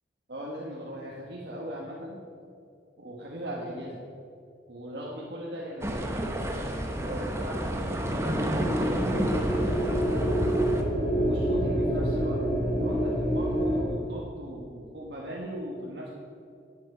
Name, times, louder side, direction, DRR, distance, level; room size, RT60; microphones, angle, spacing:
voice 1, 0.3-2.2 3.0-4.0 4.7-6.6 7.0-9.2 9.5-10.6 11.2-12.4 12.8-16.1, equal, 70° right, -4 dB, 1.3 m, -38 dB
sound 1, 5.8-10.8, right 1 dB, 15° right, 0.8 m, -30 dB
sound 2, 7.7-13.8, equal, 30° left, 1.5 m, -27 dB
11.0 x 9.0 x 5.0 m, 2.5 s
head